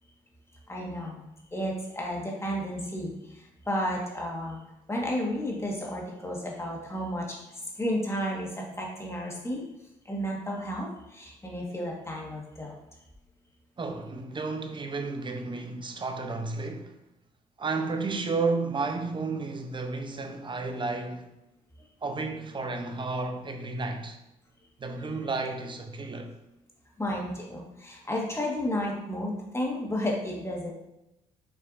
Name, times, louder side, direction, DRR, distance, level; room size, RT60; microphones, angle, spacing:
voice 1, 0.7-1.2 1.5-4.6 4.9-7.4 7.7-9.6 10.0-12.7 27.0-30.7, equal, 15° left, 1.5 m, -32 dB
voice 2, 13.8-17.0 17.6-21.3 22.0-24.2 24.8-26.3, right 3 dB, 30° right, 0.7 m, -32 dB
5.8 x 3.2 x 2.6 m
supercardioid pair, 60°, 15 cm